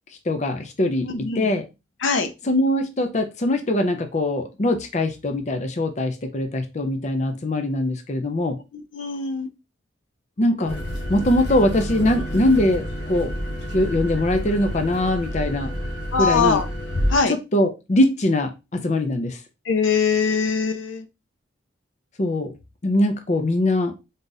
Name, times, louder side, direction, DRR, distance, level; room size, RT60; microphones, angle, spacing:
voice 1, 0.3-1.7 2.4-8.6 10.4-10.8 11.1-13.3 13.7-15.7 16.2-16.6 17.3-19.4 22.2-22.5 22.8-23.9, left 1 dB, 35° left, 6 dB, 0.5 m, -22 dB
voice 2, 1.0-1.5 2.0-2.3 8.7-9.5 16.1-16.7 17.1-17.4 19.7-21.1, left 5 dB, 80° left, 9 dB, 0.6 m, -22 dB
sound 1, 10.7-17.2, equal, 60° left, 1.3 m, -29 dB
3.9 x 2.4 x 3.9 m, 0.25 s
head